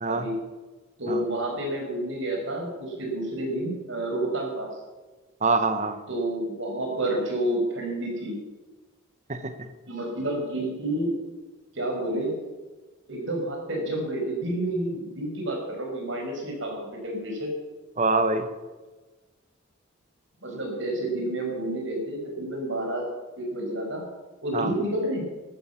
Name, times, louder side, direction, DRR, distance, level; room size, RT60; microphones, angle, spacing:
voice 1, 1.0-4.7 6.1-8.4 9.9-11.1 11.7-12.4 13.1-17.5 20.4-23.1 23.4-24.1 24.4-25.3, right 1 dB, 60° right, 0 dB, 5.5 m, -29 dB
voice 2, 5.4-6.0 9.3-9.7 18.0-18.5 24.5-24.7, right 3 dB, 35° right, 10 dB, 1.2 m, -25 dB
13.5 x 13.5 x 7.2 m, 1.2 s
head